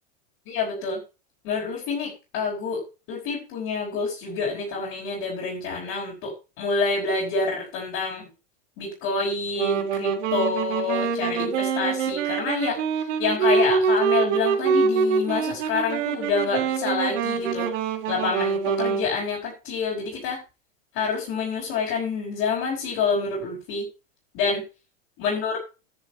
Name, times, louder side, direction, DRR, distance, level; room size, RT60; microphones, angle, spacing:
voice 1, 0.5-1.0 1.4-2.8 3.1-8.3 8.8-17.7 18.1-20.4 20.9-23.8 24.3-24.6 25.2-25.6, left 4 dB, 45° left, -5 dB, 4.9 m, -27 dB
Wind instrument woodwind instrument, 9.6-19.1, right 6 dB, 75° right, 3.0 m, -24 dB
10.5 x 7.5 x 4.3 m, 0.30 s
supercardioid pair, 145°, 37 cm